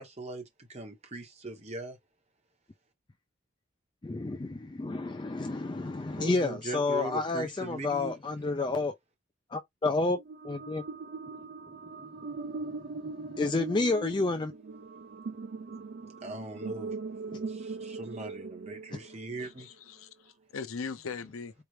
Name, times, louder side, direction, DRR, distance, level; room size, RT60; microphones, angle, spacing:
voice 1, 0.0-2.0 6.1-8.2 16.2-16.9 17.3-19.7, right 2 dB, 30° right, 1.1 m, -40 dB
voice 2, 4.0-8.9 9.5-10.2 10.4-10.8 13.2-14.5, left 3 dB, 20° left, 0.4 m, -30 dB
sound 1, 10.1-19.5, right 4 dB, 55° right, 0.4 m, -40 dB
voice 3, 19.4-21.5, left 5 dB, 85° left, 0.6 m, -40 dB
4.6 x 2.4 x 3.2 m
head